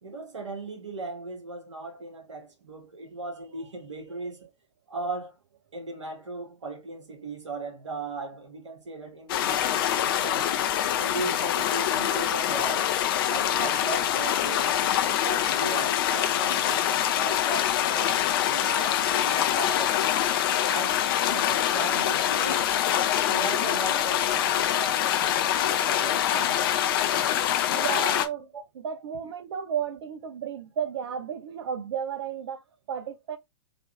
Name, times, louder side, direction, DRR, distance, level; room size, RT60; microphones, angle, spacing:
voice 1, 0.0-4.4 4.9-5.3 5.7-10.5 11.0-12.9 13.3-14.7 15.1-20.2 20.6-22.7 23.3-26.7 28.4-28.6, right 3 dB, 75° right, 1.5 m, -37 dB
sound 1, 9.3-28.3, left 11 dB, 50° left, 0.7 m, -25 dB
voice 2, 27.7-28.5 28.8-32.6 32.9-33.4, right 8 dB, 60° right, 0.8 m, -33 dB
4.0 x 2.8 x 3.1 m
figure-of-eight pair, 105°, 16 cm